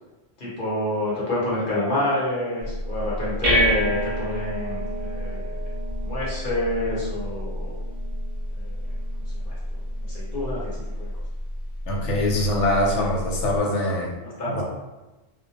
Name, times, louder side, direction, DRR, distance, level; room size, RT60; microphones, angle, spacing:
voice 1, 0.4-5.5 6.0-7.8 8.5-8.8 9.4-9.6 10.1-11.1 14.2-14.6, left 1 dB, 50° left, -7 dB, 0.9 m, -28 dB
sound 1, 2.6-13.6, equal, 55° right, 0.7 m, -29 dB
voice 2, 11.9-14.1 14.5-14.6, left 1 dB, 85° left, -2 dB, 0.9 m, -23 dB
2.1 x 2.1 x 2.7 m, 1.1 s
omnidirectional pair, 1.2 m